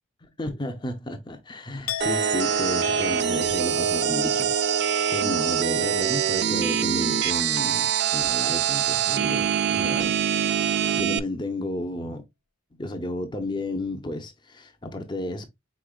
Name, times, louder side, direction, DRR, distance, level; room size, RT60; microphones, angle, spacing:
voice 1, 0.4-10.6 10.9-12.2 12.8-15.4, left 1 dB, 20° left, 0.5 m, -32 dB
Chink clink, 1.9-7.8 8.1-8.5, left 10 dB, 85° left, 0.5 m, -39 dB
sound 1, 2.0-11.2, right 8 dB, 50° right, 0.3 m, -24 dB
5.0 x 3.8 x 2.2 m
head